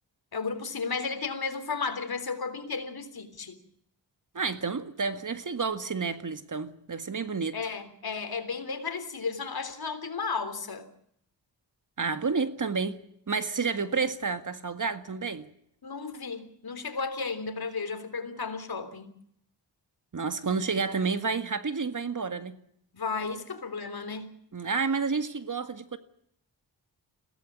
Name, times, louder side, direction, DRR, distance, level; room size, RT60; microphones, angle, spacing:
voice 1, 0.3-3.6 7.5-10.9 15.8-19.1 22.9-24.3, left 4 dB, 55° left, 3.6 m, -34 dB
voice 2, 4.3-7.6 12.0-15.5 20.1-22.5 24.5-26.0, right 5 dB, 45° right, 1.9 m, -30 dB
22.0 x 17.5 x 8.7 m
cardioid pair, 70°, 43 cm